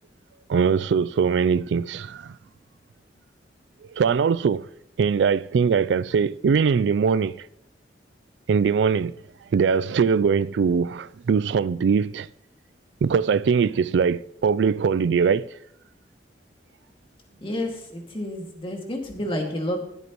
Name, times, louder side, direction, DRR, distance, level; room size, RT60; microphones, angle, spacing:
voice 1, 0.5-2.3 3.9-4.7 5.0-7.5 8.5-9.1 9.5-12.3 13.0-15.4, right 6 dB, 80° right, 0.3 m, -21 dB
voice 2, 17.4-19.8, left 1 dB, 30° left, 2.2 m, -30 dB
21.5 x 8.1 x 3.0 m
head